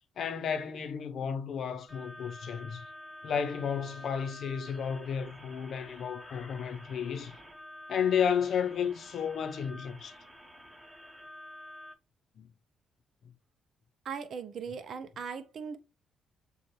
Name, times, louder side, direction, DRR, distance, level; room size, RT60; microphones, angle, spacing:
voice 1, 0.2-2.8 3.2-7.4 7.9-10.2 12.4-12.5, left 7 dB, 60° left, 0.6 m, -32 dB
sound 1, 1.9-11.9, left 1 dB, 10° right, 1.1 m, -49 dB
voice 2, 14.0-15.8, right 6 dB, 55° right, 0.6 m, -39 dB
6.8 x 2.4 x 3.2 m
cardioid pair, 90°, 0 cm